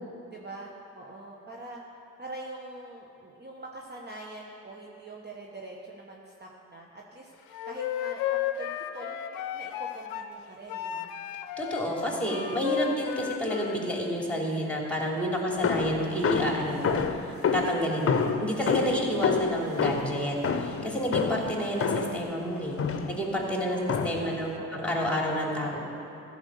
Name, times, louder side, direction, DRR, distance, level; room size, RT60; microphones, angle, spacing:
voice 1, 0.3-1.8 2.2-7.3 7.6-11.1 12.8-13.0 15.2-16.1 16.6-16.8 18.2-18.5 23.7-25.0 25.3-25.5, right 2 dB, 30° right, -2 dB, 1.3 m, -44 dB
Wind instrument woodwind instrument, 7.5-10.3 10.7-13.8, left 9 dB, 75° left, 0.6 m, -33 dB
voice 2, 11.6-17.2 17.5-22.8 23.1-23.8 24.0-25.8, equal, 5° left, -2 dB, 3.0 m, -29 dB
sound 1, 15.6-22.3 22.8-23.2 23.9-24.4, left 6 dB, 40° left, 0.9 m, -28 dB
14.5 x 5.3 x 6.9 m, 2.7 s
hypercardioid pair, 45°, 35 cm